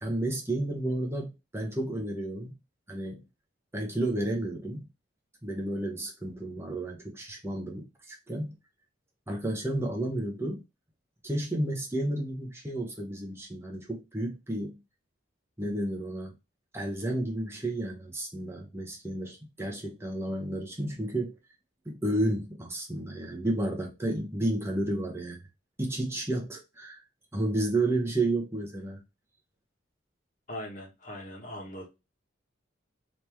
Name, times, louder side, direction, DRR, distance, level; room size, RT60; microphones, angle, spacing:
voice 1, 0.0-2.5 2.9-3.2 3.7-4.9 5.4-8.5 9.3-10.6 11.2-14.8 15.6-16.3 16.7-21.3 21.8-25.4 25.8-27.0 27.3-29.0, right 1 dB, 15° right, 0.9 m, -31 dB
voice 2, 30.5-31.9, left 1 dB, 40° left, 1.3 m, -40 dB
3.1 x 2.9 x 3.5 m
head